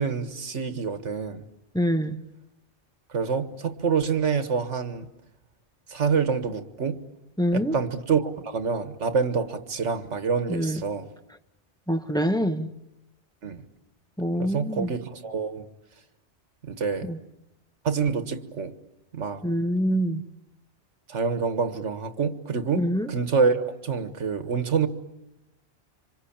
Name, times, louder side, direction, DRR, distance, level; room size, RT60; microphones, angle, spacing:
voice 1, 0.0-1.4 3.1-5.1 5.9-7.0 7.5-11.1 13.4-13.6 14.4-15.7 16.6-17.1 17.9-18.7 19.1-19.4 21.1-24.9, right 5 dB, 90° right, 1.8 m, -27 dB
voice 2, 1.7-2.2 7.4-7.7 10.5-10.8 11.9-12.7 14.2-14.9 17.0-17.2 19.4-20.2 22.7-23.1, equal, 5° left, 1.1 m, -25 dB
26.0 x 26.0 x 8.7 m
omnidirectional pair, 1.2 m